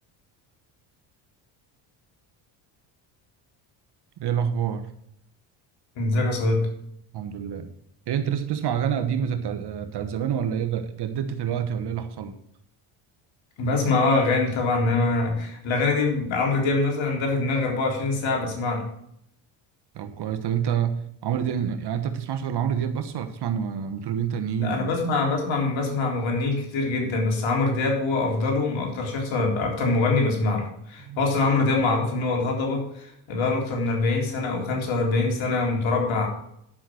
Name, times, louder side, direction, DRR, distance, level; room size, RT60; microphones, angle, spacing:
voice 1, 4.2-4.9 7.1-7.7 8.1-12.4 19.9-24.9 31.1-31.2, right 8 dB, 50° right, 1.2 m, -27 dB
voice 2, 6.0-6.7 13.6-18.8 24.6-36.3, left 3 dB, 65° left, 3.8 m, -24 dB
11.0 x 5.8 x 6.3 m
supercardioid pair, 85°, 50 cm